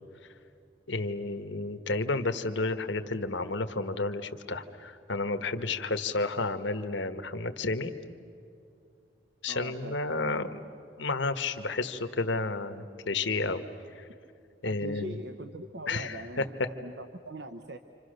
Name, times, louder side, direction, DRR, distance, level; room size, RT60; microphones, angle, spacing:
voice 1, 0.9-7.9 9.4-10.6 11.0-13.6 13.9-14.1 14.6-15.2 15.9-16.4, left 3 dB, 75° left, 8 dB, 1.4 m, -31 dB
voice 2, 9.5-10.0 14.6-17.8, right 1 dB, 60° right, 7 dB, 1.0 m, -41 dB
29.0 x 26.5 x 6.7 m, 2.5 s
head